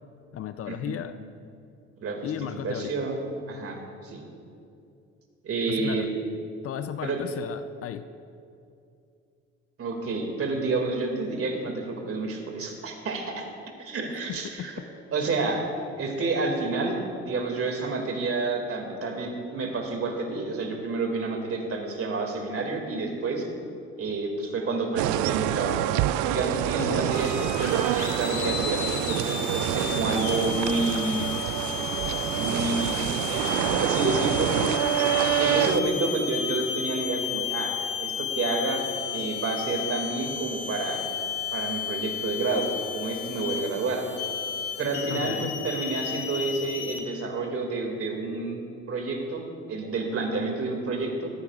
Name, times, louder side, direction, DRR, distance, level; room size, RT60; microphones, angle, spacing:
voice 1, 0.3-1.2 2.2-3.1 5.7-6.1 6.6-8.0 14.3-14.7 26.8-27.2 45.1-45.6, left 10 dB, 45° left, 11 dB, 0.6 m, -35 dB
voice 2, 2.0-2.3 2.6-4.2 5.4-6.1 7.0-7.2 9.8-13.5 13.8-14.7 15.1-15.7 16.0-17.0 17.2-23.5 24.0-25.8 26.3-31.3 32.3-33.0 33.3-34.5 35.0-38.8 39.1-41.1 41.5-44.0 44.8-51.3, right 3 dB, 45° right, 3 dB, 2.4 m, -29 dB
sound 1, 25.0-35.8, right 13 dB, 60° right, 0.5 m, -27 dB
sound 2, 27.1-47.0, left 8 dB, 70° left, 1.4 m, -33 dB
17.0 x 14.0 x 2.5 m, 2.5 s
hypercardioid pair, 55°, 33 cm